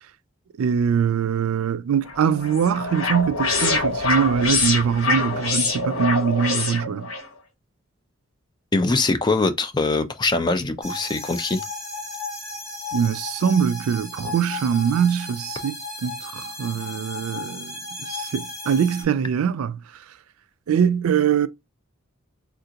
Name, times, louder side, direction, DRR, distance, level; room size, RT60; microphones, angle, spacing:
voice 1, 0.6-7.1 12.9-19.8 20.7-21.5, right 7 dB, 90° right, 0.4 m, -23 dB
sound 1, 2.1-7.3, left 3 dB, 75° left, 0.9 m, -25 dB
voice 2, 8.7-11.6, left 3 dB, 20° left, 0.3 m, -22 dB
sound 2, 10.8-19.0, left 2 dB, 5° right, 1.0 m, -35 dB
3.5 x 2.5 x 2.8 m
head